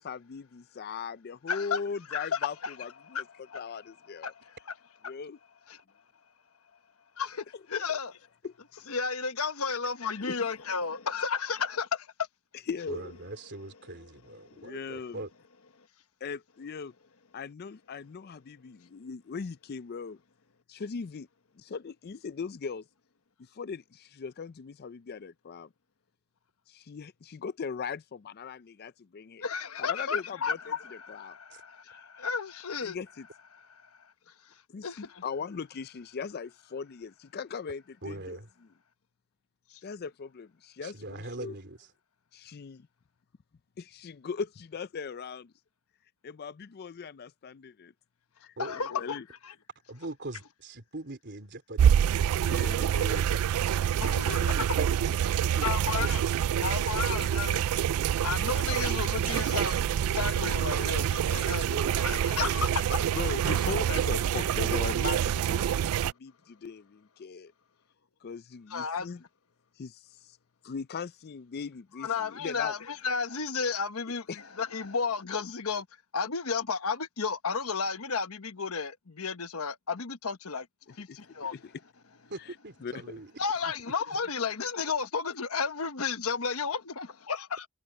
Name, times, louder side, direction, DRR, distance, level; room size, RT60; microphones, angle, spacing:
voice 1, 0.0-3.2 3.5-4.3 5.1-5.4 8.4-8.5 9.7-9.8 10.3-10.4 12.7-13.2 14.6-15.2 16.2-16.9 17.3-20.2 20.7-21.3 21.6-22.8 23.5-25.7 26.7-29.4 29.8-31.4 31.9-32.3 32.8-33.3 34.7-38.4 39.8-41.5 42.3-42.9 43.8-45.5 46.2-47.9 48.4-49.2 52.4-53.2 63.1-67.5 68.2-69.2 69.8-70.4 70.6-72.8 74.3-74.4 81.1-81.2 81.5-81.7 82.8-83.2, left 5 dB, 45° left, 0.4 m, -39 dB
voice 2, 1.5-1.8 2.1-2.7 3.1-3.6 4.2-4.6 7.2-8.2 8.9-12.1 29.4-33.0 33.5-33.6 34.8-35.2 48.6-49.5 54.0-54.4 55.6-56.2 56.6-57.6 58.2-59.8 60.1-61.6 62.0-63.0 68.7-69.1 72.0-75.9 76.1-80.7 81.0-81.6 83.4-87.7, left 5 dB, 70° left, 1.1 m, -33 dB
voice 3, 12.9-15.3 31.5-31.6 38.0-38.5 40.8-41.9 48.6-48.8 49.9-53.4 54.2-56.1 56.5-57.2 61.2-63.1 63.7-64.4 82.3-83.3, right 2 dB, 50° right, 3.6 m, -42 dB
sound 1, 51.8-66.1, right 9 dB, 75° right, 0.3 m, -27 dB
head